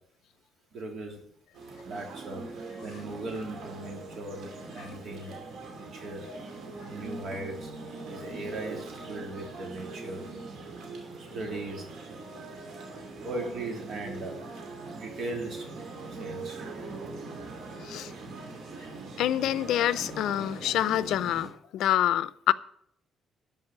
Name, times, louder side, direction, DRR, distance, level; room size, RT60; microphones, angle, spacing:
voice 1, 0.7-1.3 1.8-4.5 4.7-5.4 5.8-6.3 6.8-7.7 8.0-10.2 11.3-11.9 13.2-14.4 14.9-15.6 16.1-16.6, right 2 dB, 55° right, 3.1 m, -38 dB
sound 1, 1.5-21.5, right 3 dB, 85° right, 2.7 m, -41 dB
voice 2, 19.2-22.5, left 12 dB, 85° left, 0.5 m, -26 dB
12.5 x 5.4 x 9.1 m
cardioid pair, 145°, 0 cm